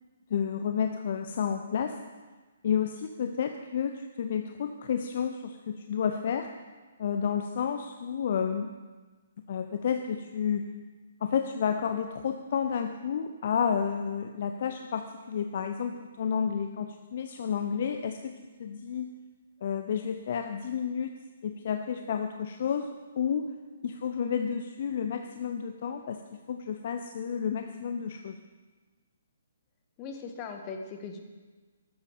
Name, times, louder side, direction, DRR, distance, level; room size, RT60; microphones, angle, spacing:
voice 1, 0.3-2.0 2.6-6.5 7.0-8.7 9.5-10.7 11.2-18.3 18.6-19.1 19.6-21.1 21.4-23.5 23.8-26.2 26.5-28.4, left 7 dB, 50° left, 6 dB, 0.8 m, -31 dB
voice 2, 30.0-31.2, left 5 dB, 25° left, 4 dB, 1.7 m, -39 dB
14.0 x 12.0 x 5.1 m, 1.3 s
figure-of-eight pair, 130°, 0 cm